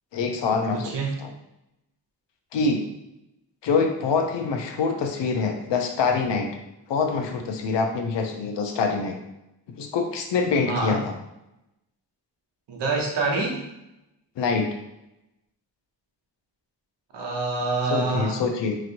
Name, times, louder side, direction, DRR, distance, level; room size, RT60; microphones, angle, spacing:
voice 1, 0.1-0.9 1.2-1.3 2.5-2.8 3.6-6.5 6.9-9.2 9.8-11.1 14.4-14.7 17.9-18.7, left 4 dB, 90° left, 4 dB, 0.6 m, -25 dB
voice 2, 0.7-1.2 10.7-11.0 12.7-13.6 17.1-18.4, right 3 dB, 75° right, 0 dB, 0.8 m, -26 dB
3.0 x 2.5 x 2.8 m, 0.88 s
wide cardioid pair, 100°, 42 cm